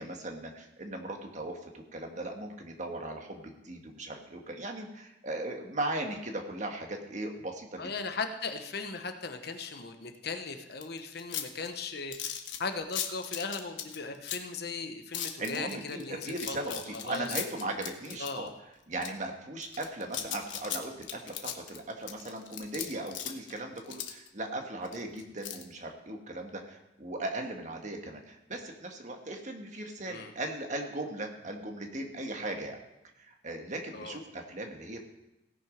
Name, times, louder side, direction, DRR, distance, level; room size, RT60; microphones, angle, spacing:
voice 1, 0.0-7.9 15.4-18.5 18.9-32.8 33.2-35.0, right 2 dB, 40° right, 3 dB, 1.5 m, -38 dB
voice 2, 7.8-12.3 12.6-17.3 18.2-18.5 30.1-30.3 33.9-34.2, left 4 dB, 60° left, 6 dB, 1.1 m, -38 dB
sound 1, 10.8-14.6 15.1-18.5 19.0-19.1 19.6-24.3 24.8-25.6, left 10 dB, 85° left, 1.2 m, -37 dB
17.0 x 6.2 x 5.2 m, 0.94 s
head